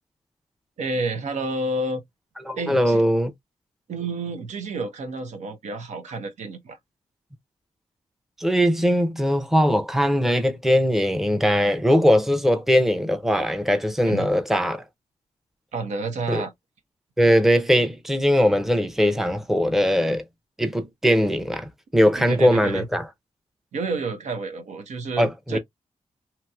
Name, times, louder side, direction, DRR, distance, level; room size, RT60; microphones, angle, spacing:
voice 1, 0.8-2.0 2.6-3.0 3.9-6.8 14.0-14.3 15.7-16.5 22.2-22.9 23.7-25.6, right 3 dB, 80° right, 0.8 m, -30 dB
voice 2, 2.5-3.3 8.4-14.8 16.3-16.4 17.2-20.2 20.6-23.1 25.2-25.6, equal, 5° right, 0.6 m, -20 dB
2.9 x 2.8 x 2.3 m
cardioid pair, 80°, 12 cm